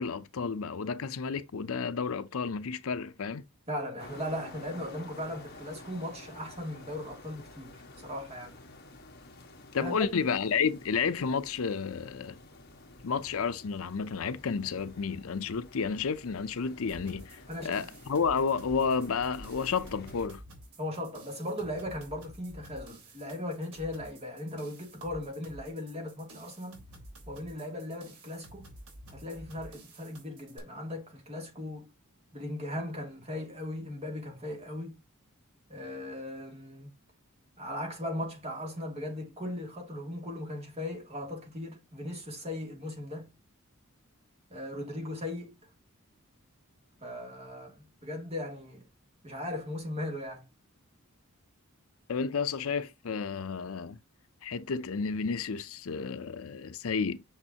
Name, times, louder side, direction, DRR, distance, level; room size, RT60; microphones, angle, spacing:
voice 1, 0.0-3.4 9.7-12.3 13.0-17.4 17.6-20.4 52.1-54.0 54.4-57.2, left 5 dB, 70° left, 0.5 m, -31 dB
voice 2, 3.7-8.6 9.8-10.1 17.5-17.9 20.8-26.8 27.3-28.7 29.1-31.9 32.3-35.0 35.7-36.9 37.6-43.3 44.5-45.6 47.0-48.8 49.2-50.4, left 1 dB, 30° right, 2.7 m, -38 dB
sound 1, 4.0-20.3, left 2 dB, 45° left, 1.5 m, -50 dB
sound 2, 16.9-30.6, right 1 dB, 85° right, 3.3 m, -51 dB
6.5 x 6.3 x 2.8 m
head